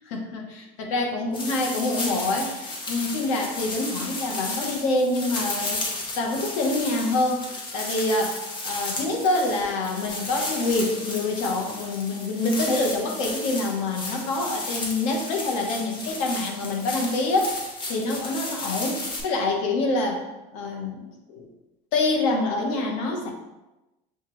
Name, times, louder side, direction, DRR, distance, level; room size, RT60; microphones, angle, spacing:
voice 1, 0.1-5.8 6.1-8.4 8.6-17.5 17.9-20.2 20.5-21.4 21.9-23.3, left 2 dB, 85° left, 2 dB, 1.0 m, -26 dB
sound 1, 1.3-19.2, left 2 dB, 30° left, 0.9 m, -33 dB
6.5 x 2.4 x 3.0 m, 1.0 s
cardioid pair, 155°, 16 cm